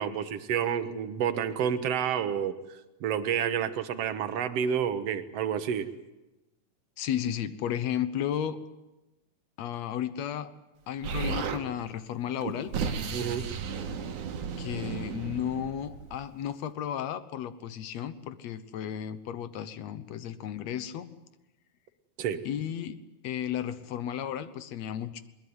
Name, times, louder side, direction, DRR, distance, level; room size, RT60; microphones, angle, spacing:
voice 1, 0.0-2.6 3.0-5.9 13.1-13.4 22.2-22.5, right 8 dB, 60° right, 10 dB, 2.2 m, -29 dB
voice 2, 7.0-8.6 9.6-10.5 10.9-12.7 14.6-21.1 22.4-23.0 23.2-25.2, left 10 dB, 70° left, 13 dB, 2.2 m, -33 dB
Explosion, 11.0-11.6 12.4-16.3, right 6 dB, 85° right, 3.1 m, -34 dB
21.5 x 21.0 x 9.6 m, 1.0 s
omnidirectional pair, 3.4 m